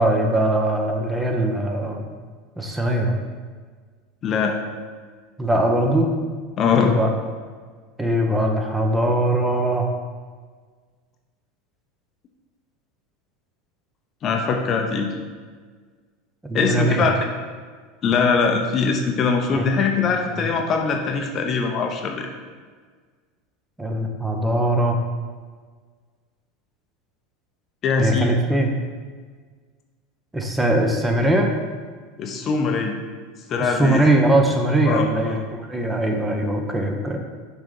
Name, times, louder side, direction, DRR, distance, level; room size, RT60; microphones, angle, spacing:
voice 1, 0.0-2.0 2.6-3.1 5.4-6.1 6.7-7.2 8.0-9.9 16.4-17.1 19.6-19.7 20.3-20.4 23.8-25.0 28.0-28.7 30.3-31.5 33.6-35.4 35.7-37.2, right 1 dB, 10° right, 2 dB, 1.0 m, -21 dB
voice 2, 4.2-4.6 6.6-6.9 14.2-15.1 16.5-17.1 18.0-22.3 27.8-28.3 32.2-33.0 33.5-34.0 34.9-35.4, left 5 dB, 40° left, 3 dB, 0.8 m, -22 dB
5.8 x 4.0 x 5.5 m, 1.5 s
hypercardioid pair, 85°, 0 cm